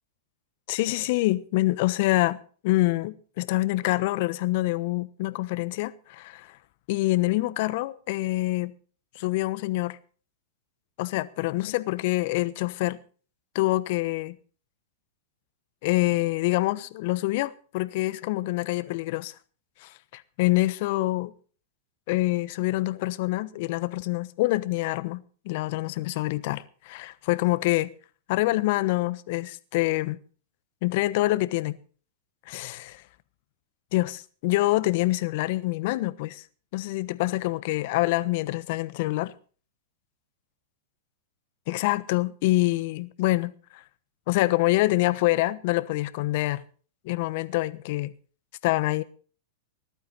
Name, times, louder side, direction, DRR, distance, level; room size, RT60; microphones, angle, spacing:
voice 1, 0.7-2.4 2.6-6.6 6.9-8.7 9.1-10.0 11.0-13.0 13.5-14.4 15.8-19.3 19.8-21.3 22.1-27.9 28.3-30.2 30.8-31.8 32.5-33.0 33.9-36.4 36.7-39.3 41.7-43.8 44.3-46.6 47.0-48.1 48.6-49.0, left 19 dB, 55° left, 1.1 m, -26 dB
20.0 x 12.0 x 4.1 m
hypercardioid pair, 100°, 0 cm